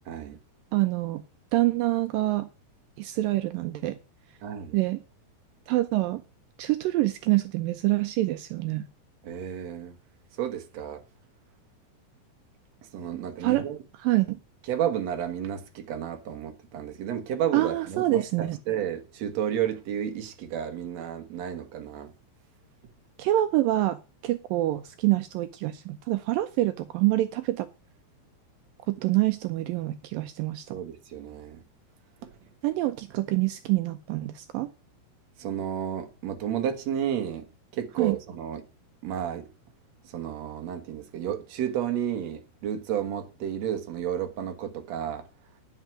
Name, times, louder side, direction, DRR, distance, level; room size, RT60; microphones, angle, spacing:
voice 1, 0.1-0.4 4.4-4.8 9.2-10.0 10.4-11.0 12.9-13.8 14.7-22.1 30.7-31.6 32.2-32.3 35.4-37.5 37.7-38.7 39.0-39.5 40.0-45.3, right 9 dB, 55° right, 2.1 m, -32 dB
voice 2, 0.7-1.2 1.5-2.5 3.0-4.0 4.7-5.0 5.7-6.2 6.6-8.9 13.4-13.6 14.0-14.4 17.5-18.6 23.2-27.7 28.9-30.8 32.6-34.7 38.0-38.2, right 16 dB, 85° right, 2.0 m, -26 dB
10.0 x 8.0 x 6.1 m
omnidirectional pair, 4.8 m